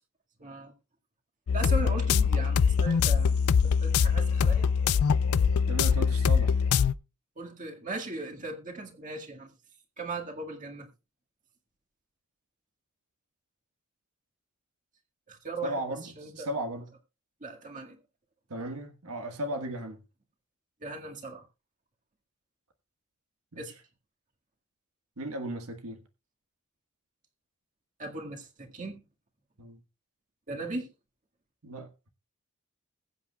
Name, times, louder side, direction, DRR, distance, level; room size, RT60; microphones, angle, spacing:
voice 1, 0.4-0.7 1.5-3.4 3.6-4.7 7.4-9.5 10.0-10.9 15.3-16.5 17.4-18.0 19.5-19.6 20.8-21.4 23.6-23.7 28.0-29.0 30.5-30.9, right 3 dB, 35° right, 1.8 m, -38 dB
sound 1, 1.5-6.9, left 6 dB, 80° left, 0.4 m, -23 dB
voice 2, 5.7-6.6 15.6-16.9 18.5-20.0 23.5-23.7 25.2-26.0 29.6-29.8 31.6-31.9, right 1 dB, 80° right, 1.4 m, -36 dB
21.0 x 8.2 x 2.3 m
head